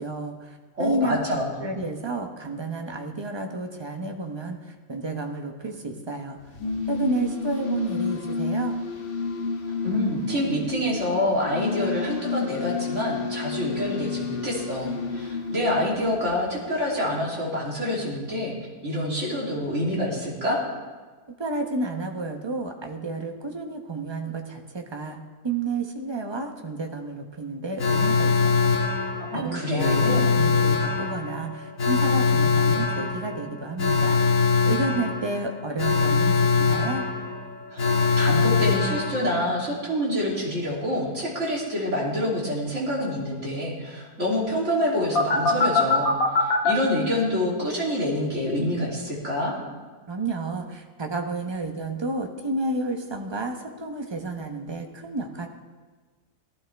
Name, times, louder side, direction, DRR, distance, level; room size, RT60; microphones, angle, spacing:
voice 1, 0.0-6.4 6.9-8.8 21.4-25.2 25.4-28.7 29.3-34.2 34.7-37.0 50.1-55.5, right 2 dB, 20° right, 3 dB, 0.8 m, -31 dB
voice 2, 0.8-1.6 9.8-18.5 18.8-20.6 29.3-30.3 37.7-49.6, left 1 dB, 45° right, -5 dB, 3.4 m, -27 dB
sound 1, 6.4-16.8, left 4 dB, 40° left, 1.1 m, -31 dB
Alarm, 27.8-39.7 45.2-46.7, left 4 dB, 60° left, 1.8 m, -23 dB
17.0 x 12.5 x 3.5 m, 1.4 s
omnidirectional pair, 1.7 m